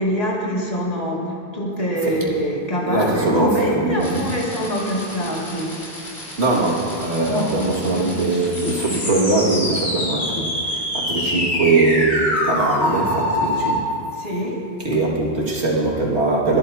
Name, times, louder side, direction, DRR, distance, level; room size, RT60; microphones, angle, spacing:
voice 1, 0.0-5.8 7.3-7.5 7.9-8.1 14.1-14.6, equal, 35° left, -4 dB, 2.4 m, -25 dB
voice 2, 2.9-4.3 6.4-13.9 14.8-16.6, right 3 dB, 70° right, -4 dB, 2.4 m, -21 dB
sound 1, 4.0-13.8, left 1 dB, 65° left, 2.6 m, -26 dB
25.0 x 11.0 x 2.8 m, 2.7 s
omnidirectional pair, 1.2 m